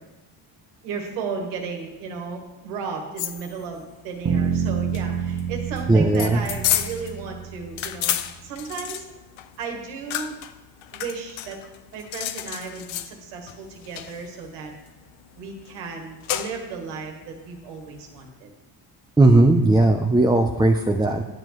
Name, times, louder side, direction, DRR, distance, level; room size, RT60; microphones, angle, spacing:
voice 1, 0.8-8.2 8.4-9.0 9.6-10.3 10.9-11.6 11.9-14.7 15.4-18.5, right 5 dB, 90° right, 2 dB, 1.5 m, -34 dB
sound 1, 3.2-18.3, left 12 dB, 75° left, 0.7 m, -32 dB
sound 2, 4.3-8.4, right 7 dB, 30° right, 0.9 m, -28 dB
voice 2, 5.9-6.4 19.2-21.2, right 2 dB, 10° right, 3 dB, 0.5 m, -17 dB
10.5 x 7.4 x 3.1 m, 1.1 s
supercardioid pair, 70°, 48 cm